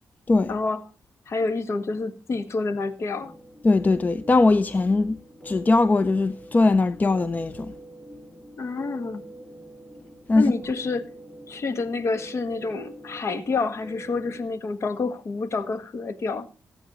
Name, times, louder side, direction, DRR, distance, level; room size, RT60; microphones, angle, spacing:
voice 1, 0.5-0.8 1.3-3.3 8.6-9.3 10.3-11.1 11.5-16.5, left 3 dB, 55° left, 1.5 m, -28 dB
sound 1, 3.2-14.5, right 1 dB, 5° left, 2.4 m, -44 dB
voice 2, 3.6-5.2 5.4-7.7 10.3-10.5, left 3 dB, 30° left, 0.5 m, -20 dB
16.5 x 8.8 x 3.0 m
cardioid pair, 85°, 6 cm